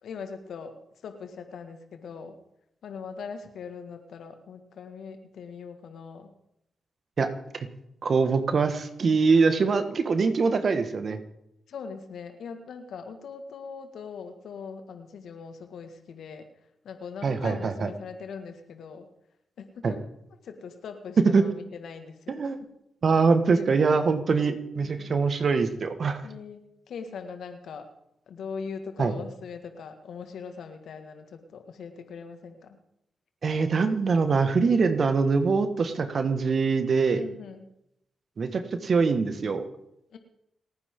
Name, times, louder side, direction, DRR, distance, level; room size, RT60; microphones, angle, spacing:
voice 1, 0.0-0.8 1.0-2.4 2.8-6.3 11.7-16.5 16.8-19.1 19.6-20.0 20.4-22.5 23.5-23.9 24.7-25.1 26.2-27.9 28.3-32.8 37.2-37.7 40.1-40.2, left 5 dB, 75° left, 7 dB, 1.9 m, -41 dB
voice 2, 7.2-7.7 8.0-11.2 17.2-17.9 19.8-19.9 21.3-21.4 22.3-22.6 23.0-26.3 29.0-29.1 33.4-37.2 38.4-39.7, right 4 dB, 60° right, 8 dB, 1.7 m, -23 dB
29.0 x 9.9 x 3.8 m, 0.80 s
supercardioid pair, 40°, 0 cm